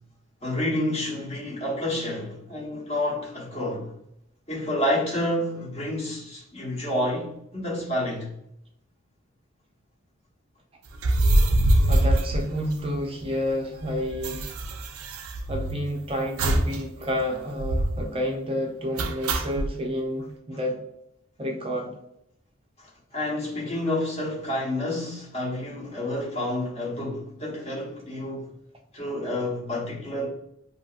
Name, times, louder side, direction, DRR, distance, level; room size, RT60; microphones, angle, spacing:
voice 1, 0.4-3.9 4.5-8.3 22.8-28.5 28.9-30.3, left 1 dB, 30° left, 1.0 m, -29 dB
sound 1, 10.9-13.2 13.5-13.6 13.8-15.9 16.4-16.8 17.1-17.2 17.6-18.1 19.0-19.7, right 1 dB, 80° right, 0.4 m, -23 dB
voice 2, 11.9-14.6 15.5-20.8 21.4-22.0, equal, 25° right, 0.5 m, -30 dB
2.8 x 2.6 x 2.4 m
head